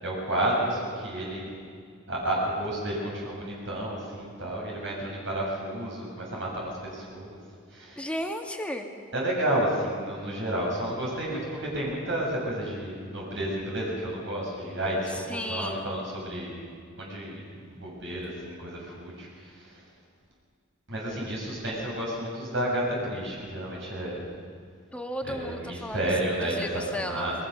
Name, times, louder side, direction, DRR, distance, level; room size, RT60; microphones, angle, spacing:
voice 1, 0.0-1.5 2.1-7.4 7.7-8.1 9.1-16.6 17.0-19.8 20.9-24.3 25.2-27.3, right 1 dB, 60° right, -3 dB, 7.2 m, -31 dB
voice 2, 8.0-8.9 15.1-15.9 24.9-26.1 26.4-27.3, left 1 dB, 5° left, 3 dB, 1.9 m, -34 dB
28.5 x 22.0 x 6.9 m, 2.1 s
head